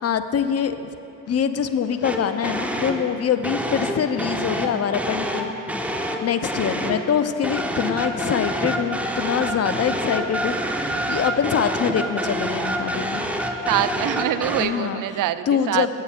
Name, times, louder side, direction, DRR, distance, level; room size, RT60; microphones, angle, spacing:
voice 1, 0.0-0.9 1.3-5.5 6.2-13.2 14.6-15.0 15.5-16.0, left 7 dB, 35° left, 10 dB, 0.6 m, -24 dB
sound 1, 2.0-3.1 3.4-7.1 7.4-14.7, equal, 5° right, 0.8 m, -27 dB
voice 2, 13.7-16.0, right 12 dB, 45° right, 13 dB, 0.5 m, -24 dB
15.0 x 8.4 x 2.5 m, 2.8 s
hypercardioid pair, 50°, 46 cm